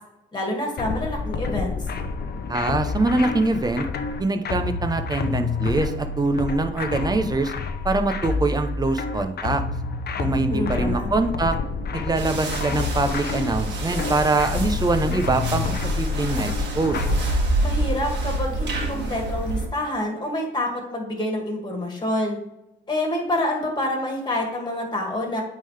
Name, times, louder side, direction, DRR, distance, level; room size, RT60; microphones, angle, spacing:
voice 1, 0.3-1.7 10.5-11.1 17.6-22.4 22.9-25.4, left 1 dB, 20° left, 1 dB, 2.2 m, -27 dB
sound 1, 0.8-17.4, left 5 dB, 55° left, 0.7 m, -28 dB
voice 2, 2.5-3.9 4.2-7.5 7.8-9.6 10.2-11.6 11.9-16.5 16.7-17.0, right 3 dB, 20° right, 7 dB, 0.8 m, -23 dB
sound 2, 12.1-19.7, right 2 dB, 65° right, 1.6 m, -27 dB
8.9 x 3.8 x 3.3 m, 0.89 s
cardioid pair, 90°, 20 cm